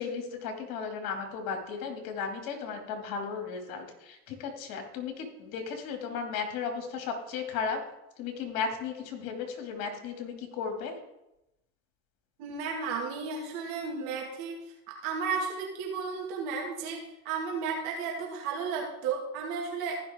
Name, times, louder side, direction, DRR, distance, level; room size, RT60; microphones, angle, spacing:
voice 1, 0.0-7.8 8.2-10.9, left 5 dB, 55° left, 3 dB, 2.6 m, -35 dB
voice 2, 12.4-14.6 14.9-20.0, right 5 dB, 55° right, -1 dB, 2.2 m, -33 dB
14.5 x 5.7 x 3.7 m, 0.91 s
hypercardioid pair, 80°, 43 cm